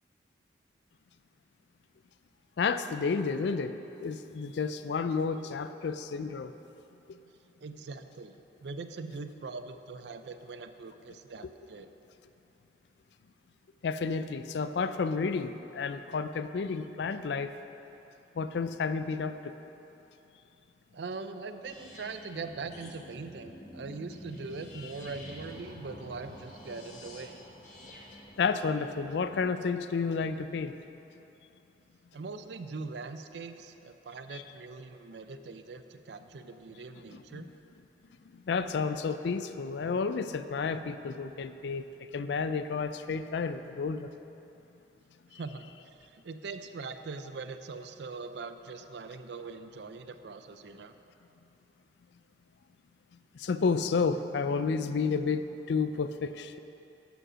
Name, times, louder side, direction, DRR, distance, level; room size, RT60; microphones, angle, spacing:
voice 1, 2.6-6.5 13.8-17.5 18.4-19.5 28.4-30.8 34.3-34.4 37.1-37.4 38.3-44.1 53.4-56.6, left 5 dB, 80° left, 11 dB, 0.4 m, -31 dB
voice 2, 7.6-11.9 20.9-27.4 32.1-37.5 45.3-50.9, right 4 dB, 75° right, 9 dB, 0.5 m, -42 dB
sound 1, 21.6-29.5, left 1 dB, 45° left, 1.3 m, -49 dB
11.0 x 5.1 x 6.2 m, 3.0 s
head